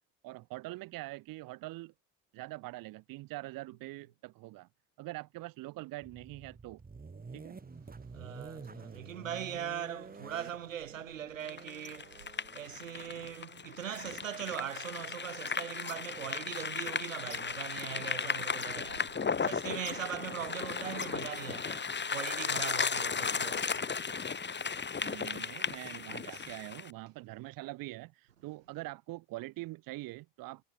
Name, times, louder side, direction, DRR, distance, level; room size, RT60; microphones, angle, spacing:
voice 1, 0.2-1.9 2.3-4.7 5.0-6.8 7.3-7.6 25.0-30.6, right 19 dB, 60° right, 2.2 m, -44 dB
sound 1, 6.0-13.8, right 4 dB, 25° right, 3.1 m, -50 dB
voice 2, 8.0-24.7 26.3-26.5, right 9 dB, 85° right, 4.8 m, -41 dB
sound 2, 11.5-26.9, left 5 dB, 30° left, 3.0 m, -35 dB
figure-of-eight pair, 55°, 38 cm